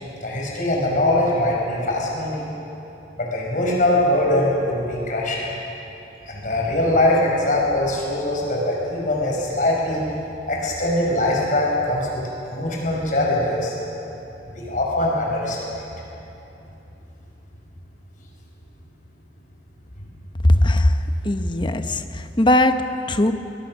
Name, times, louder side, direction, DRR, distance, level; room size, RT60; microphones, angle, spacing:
voice 1, 0.2-2.5 3.2-5.5 6.3-10.0 10.5-13.8 14.5-15.8, left 1 dB, 45° left, -2 dB, 5.5 m, -22 dB
voice 2, 20.4-21.0 21.2-23.3, left 1 dB, 25° left, 8 dB, 0.9 m, -19 dB
23.5 x 20.5 x 6.4 m, 3.0 s
head